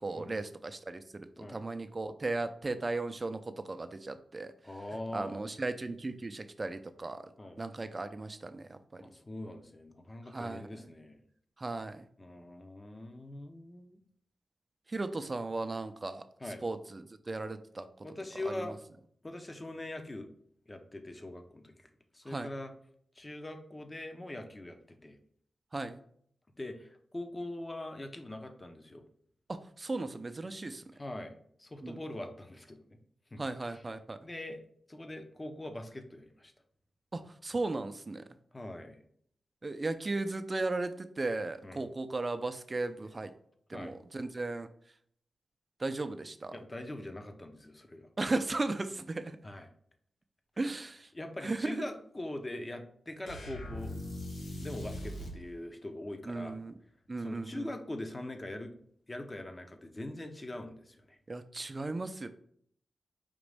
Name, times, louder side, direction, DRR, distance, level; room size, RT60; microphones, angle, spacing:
voice 1, 0.0-4.5 5.1-7.3 7.6-9.0 10.3-10.9 11.6-12.1 14.9-16.2 16.6-17.9 18.5-18.8 22.3-22.5 25.7-26.0 29.5-30.8 31.8-32.0 33.4-34.2 37.1-38.2 39.6-43.3 43.7-44.7 45.8-46.6 48.2-49.4 50.6-51.1 51.4-51.8 56.3-56.7 57.1-57.7 61.3-62.3, right 2 dB, 35° right, 9 dB, 0.5 m, -36 dB
voice 2, 4.6-5.4 7.4-7.6 9.0-11.2 12.2-14.0 16.4-16.6 18.0-18.8 19.2-20.3 20.7-21.9 22.1-22.7 23.2-25.2 26.6-29.0 31.0-33.0 33.3-33.8 34.2-34.6 34.9-36.5 38.5-39.0 41.6-41.8 43.7-43.9 46.5-48.1 49.4-49.7 51.1-54.0 54.6-56.6 57.2-58.8 59.1-61.2, left 1 dB, 25° left, 6 dB, 0.7 m, -42 dB
sound 1, 53.2-55.4, left 1 dB, 90° left, 1.1 m, -40 dB
5.2 x 3.0 x 3.4 m, 0.64 s
wide cardioid pair, 85°, 0 cm